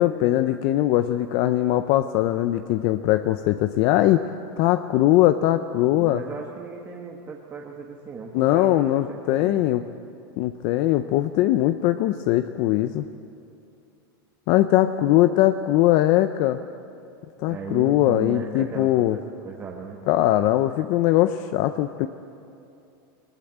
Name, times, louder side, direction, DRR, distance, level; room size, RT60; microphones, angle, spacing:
voice 1, 0.0-4.2 4.6-6.2 8.3-9.8 10.4-13.0 14.5-16.6 17.4-19.2 20.1-22.1, left 14 dB, 45° left, 10 dB, 0.6 m, -21 dB
voice 2, 6.0-9.7 17.4-20.0, right 4 dB, 20° right, -1 dB, 1.5 m, -36 dB
20.0 x 20.0 x 8.7 m, 2.6 s
supercardioid pair, 150°, 12 cm